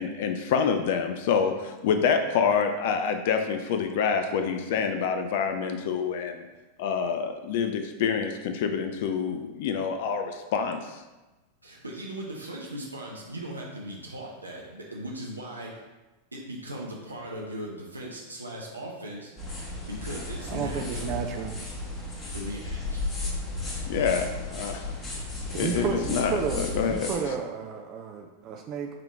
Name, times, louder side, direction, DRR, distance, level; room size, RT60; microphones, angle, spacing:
voice 1, 0.0-6.4 6.8-11.0 23.9-24.9 25.5-27.1, left 6 dB, 50° left, 6 dB, 0.3 m, -27 dB
voice 2, 11.6-15.8 16.3-19.4 19.9-21.2 22.3-23.1, right 1 dB, 80° right, -2 dB, 0.6 m, -38 dB
sound 1, 19.4-27.2, left 2 dB, 25° left, 1.2 m, -34 dB
voice 3, 20.5-21.6 25.5-28.9, right 6 dB, 35° right, 3 dB, 0.4 m, -32 dB
4.9 x 2.9 x 3.4 m, 1.1 s
figure-of-eight pair, 90°, 0 cm